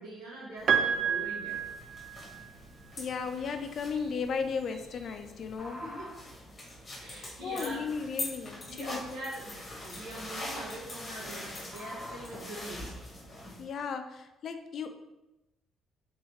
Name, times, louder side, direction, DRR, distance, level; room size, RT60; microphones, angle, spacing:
voice 1, 0.0-1.6 5.8-6.2 7.0-7.9 8.6-12.9, right 1 dB, 80° right, -5 dB, 1.3 m, -43 dB
Piano, 0.7-2.7 4.0-4.1, right 7 dB, 40° right, 0.3 m, -29 dB
sound 1, 1.5-13.6, left 1 dB, 25° left, 1.0 m, -43 dB
voice 2, 3.0-5.8 7.4-9.0 13.6-14.9, left 5 dB, 45° left, 7 dB, 0.3 m, -35 dB
sound 2, 3.2-13.2, equal, 5° right, 1.3 m, -52 dB
3.5 x 3.5 x 3.0 m, 0.97 s
cardioid pair, 155°, 0 cm